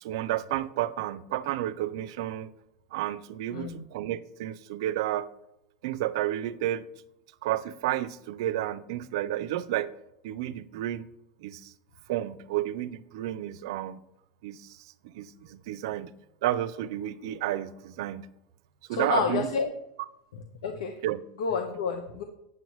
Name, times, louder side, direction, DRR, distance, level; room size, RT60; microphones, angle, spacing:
voice 1, 0.0-2.5 2.9-5.3 5.8-6.8 7.4-9.9 10.2-11.1 11.4-11.7 12.1-14.0 14.4-16.1 16.4-18.3 18.9-19.5 21.0-21.2, right 13 dB, 70° right, 16 dB, 0.5 m, -31 dB
voice 2, 3.5-3.8 18.9-19.7 20.3-21.0 21.4-22.2, left 6 dB, 85° left, 3 dB, 0.9 m, -30 dB
9.2 x 7.7 x 3.1 m, 0.85 s
supercardioid pair, 120°, 3 cm